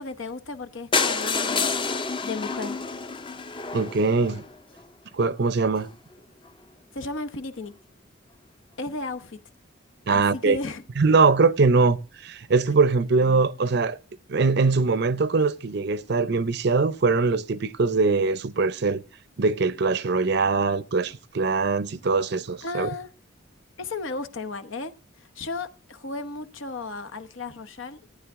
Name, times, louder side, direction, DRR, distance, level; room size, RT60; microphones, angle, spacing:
voice 1, 0.0-1.9 2.2-2.8 6.9-7.7 8.8-9.4 10.1-10.8 22.6-23.1 23.8-28.0, left 3 dB, 75° left, 1.0 m, -34 dB
sound 1, 0.9-4.8 5.5-5.6 5.8-5.9 6.2-6.3 6.5-6.6, left 4 dB, 25° left, 0.6 m, -28 dB
voice 2, 3.7-4.4 5.1-5.9 10.1-10.6 11.0-14.0 14.3-19.0 19.4-22.9, right 4 dB, 55° right, 0.6 m, -22 dB
15.5 x 9.5 x 3.6 m
head